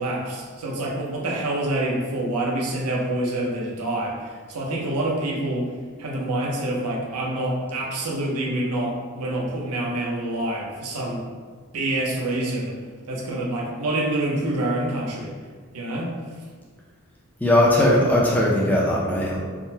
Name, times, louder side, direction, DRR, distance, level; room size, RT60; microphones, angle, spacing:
voice 1, 0.0-5.7 6.0-11.2 11.7-12.7 13.1-15.3 15.7-16.1, right 1 dB, 85° right, -2 dB, 0.6 m, -26 dB
voice 2, 17.4-19.4, left 1 dB, 5° left, -4 dB, 0.4 m, -19 dB
3.6 x 2.1 x 2.7 m, 1.5 s
head